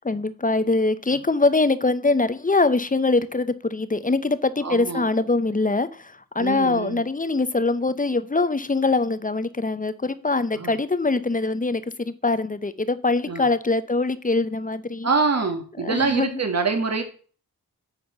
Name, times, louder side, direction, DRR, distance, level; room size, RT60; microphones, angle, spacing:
voice 1, 0.0-15.1 15.8-16.3, left 3 dB, 25° left, 14 dB, 0.7 m, -23 dB
voice 2, 4.6-5.0 6.4-7.0 10.6-10.8 13.3-13.4 15.0-17.0, right 4 dB, 45° right, 6 dB, 1.4 m, -25 dB
8.6 x 4.3 x 5.4 m, 0.41 s
cardioid pair, 55°, 36 cm